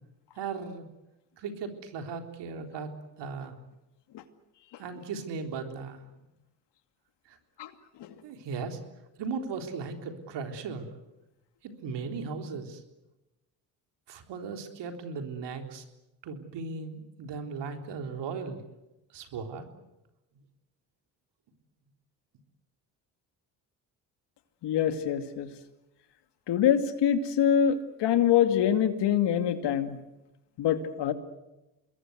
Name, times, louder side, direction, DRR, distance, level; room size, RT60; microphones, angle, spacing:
voice 1, 0.3-0.8 1.4-2.9 3.2-3.6 4.8-6.1 7.3-7.4 8.2-8.8 9.2-10.9 11.6-12.8 14.1-15.8 16.2-18.6 19.1-19.7, right 5 dB, 75° right, 5 dB, 3.7 m, -37 dB
voice 2, 24.6-25.5 26.5-30.0 30.6-31.1, left 9 dB, 75° left, 9 dB, 2.5 m, -25 dB
26.5 x 21.5 x 8.1 m, 0.97 s
supercardioid pair, 65°, 42 cm